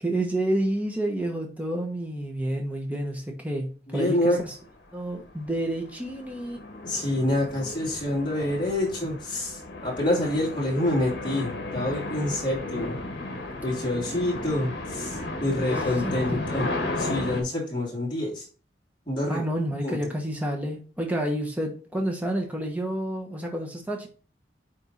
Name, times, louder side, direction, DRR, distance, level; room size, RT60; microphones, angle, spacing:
voice 1, 0.0-4.5 4.9-6.6 15.6-15.7 16.0-16.5 19.3-24.1, right 1 dB, 10° right, 1 dB, 1.1 m, -29 dB
voice 2, 3.9-4.4 6.8-13.0 13.6-16.7 17.0-18.4 19.1-19.4 19.8-19.9, left 1 dB, 25° left, -3 dB, 2.9 m, -27 dB
sound 1, 4.4-4.6 5.1-17.4, left 2 dB, 60° left, 1.7 m, -34 dB
9.3 x 3.5 x 4.1 m, 0.38 s
head